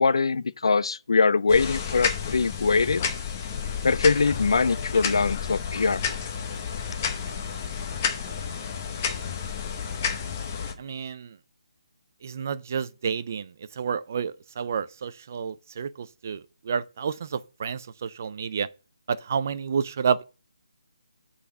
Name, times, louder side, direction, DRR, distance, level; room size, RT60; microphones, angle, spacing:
voice 1, 0.0-3.0 3.8-6.0, left 4 dB, 60° left, 0.5 m, -22 dB
sound 1, 1.5-10.7, left 7 dB, 20° left, 0.8 m, -31 dB
voice 2, 10.8-11.3 12.2-13.5 13.8-18.7 19.1-20.2, right 6 dB, 25° right, 0.3 m, -30 dB
8.4 x 4.1 x 6.7 m
hypercardioid pair, 175°, 3 cm